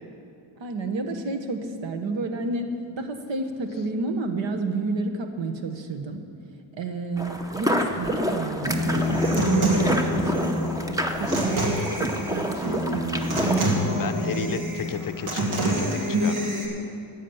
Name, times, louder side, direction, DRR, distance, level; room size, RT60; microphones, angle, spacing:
voice 1, 0.6-2.7 3.0-6.2 6.8-10.7 11.2-11.8 12.3-13.1 14.2-14.5, right 3 dB, 70° right, 6 dB, 1.3 m, -30 dB
sound 1, 7.2-13.7, equal, 10° right, 0.7 m, -28 dB
Human voice / Acoustic guitar, 8.7-16.6, equal, 90° right, 2.4 m, -26 dB
voice 2, 14.0-15.4 15.7-16.5, left 7 dB, 45° left, 9 dB, 0.5 m, -33 dB
13.0 x 8.5 x 7.2 m, 2.8 s
wide cardioid pair, 155°, 47 cm